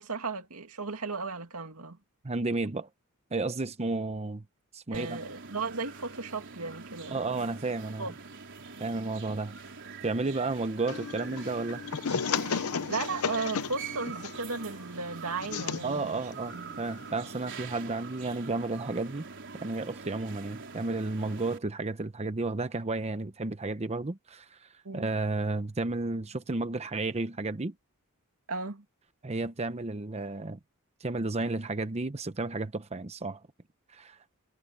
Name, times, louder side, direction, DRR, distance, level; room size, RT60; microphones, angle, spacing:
voice 1, 0.0-2.0 4.9-7.5 8.0-8.1 12.9-16.8 24.8-25.1 28.5-28.8, right 4 dB, 85° right, 2.3 m, -36 dB
voice 2, 2.2-2.9 3.3-4.4 4.7-5.2 7.1-8.1 8.8-9.5 10.0-11.8 15.8-19.3 19.6-27.7 29.2-30.6 31.0-33.4 33.9-34.2, right 3 dB, 30° right, 0.8 m, -32 dB
sound 1, 4.9-21.6, right 5 dB, 60° right, 4.1 m, -45 dB
sound 2, 10.9-17.5, left 6 dB, 90° left, 0.7 m, -35 dB
head